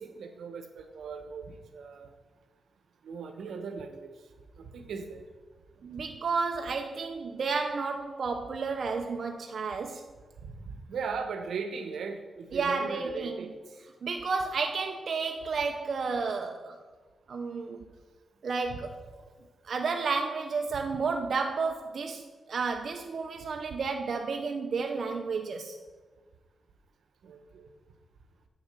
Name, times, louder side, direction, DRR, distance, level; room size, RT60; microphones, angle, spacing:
voice 1, 0.0-2.1 3.0-4.1 4.6-5.2 10.4-13.6 18.7-18.8 27.2-27.7, right 5 dB, 85° right, 1.1 m, -38 dB
voice 2, 5.8-10.1 12.5-13.5 14.0-16.8 17.3-17.9 18.4-19.1 19.6-25.8, right 4 dB, 60° right, 0.7 m, -32 dB
8.2 x 7.1 x 6.7 m
cardioid pair, 105°, 0 cm